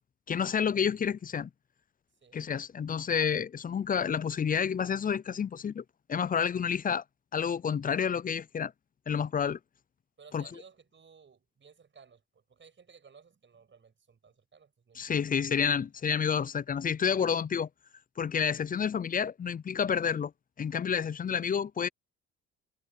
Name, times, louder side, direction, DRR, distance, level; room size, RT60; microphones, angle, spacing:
voice 1, 0.3-1.5 2.3-5.8 6.1-7.0 7.3-8.7 9.1-9.6 10.3-10.4 15.0-17.7 18.2-20.3 20.6-21.9, left 7 dB, 30° left, 0.5 m, -29 dB
voice 2, 10.2-15.4 15.7-15.9, right 6 dB, 40° right, 6.2 m, -58 dB
cardioid pair, 90°, 30 cm